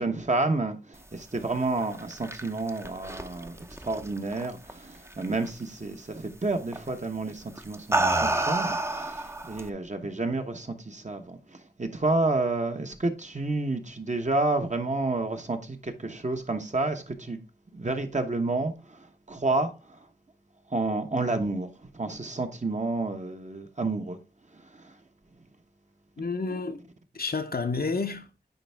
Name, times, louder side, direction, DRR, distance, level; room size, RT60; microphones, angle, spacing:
voice 1, 0.0-17.4 17.7-20.0 20.7-21.7 21.9-24.2 24.7-24.9, right 2 dB, 45° right, 1.1 m, -30 dB
sound 1, 1.8-4.7 5.1-5.5 6.7-6.9 7.6-9.7, right 2 dB, 15° right, 0.7 m, -29 dB
voice 2, 26.2-26.8 27.1-28.5, left 4 dB, 65° left, 0.8 m, -30 dB
9.8 x 3.5 x 3.4 m
wide cardioid pair, 50°, 17 cm